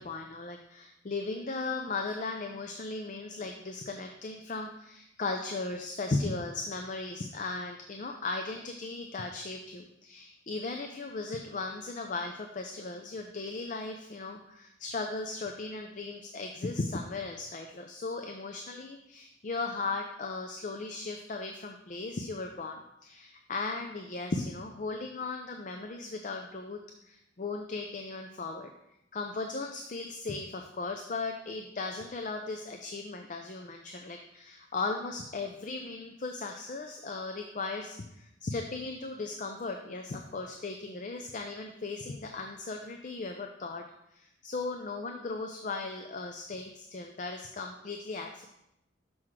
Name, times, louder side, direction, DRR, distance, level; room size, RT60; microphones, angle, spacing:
voice 1, 0.0-26.8 27.1-28.7 29.1-43.9 44.1-48.5, left 3 dB, 40° left, 4 dB, 0.5 m, -37 dB
6.2 x 5.8 x 4.6 m, 0.83 s
head